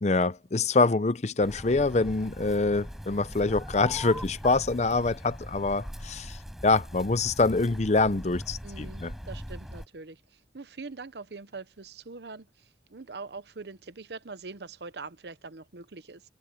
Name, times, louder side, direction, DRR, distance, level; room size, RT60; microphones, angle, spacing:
voice 1, 0.0-6.4 6.6-9.1, left 3 dB, 40° left, 0.6 m, -25 dB
sound 1, 1.4-9.9, equal, ahead, 5.0 m, -41 dB
voice 2, 8.6-10.2 10.5-12.5 12.9-16.2, right 4 dB, 70° right, 0.8 m, -43 dB
head